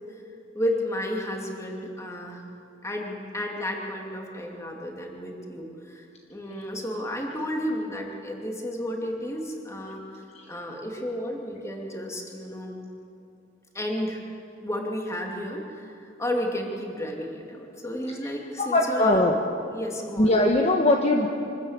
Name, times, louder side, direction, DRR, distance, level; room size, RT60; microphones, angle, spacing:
voice 1, 0.5-2.4 2.8-10.0 10.5-12.8 13.7-14.2 14.6-19.3 19.7-20.3, equal, 15° left, 1 dB, 2.5 m, -32 dB
voice 2, 18.6-19.3 20.2-21.3, left 1 dB, 35° left, 1 dB, 1.2 m, -21 dB
25.0 x 13.0 x 8.3 m, 2.7 s
head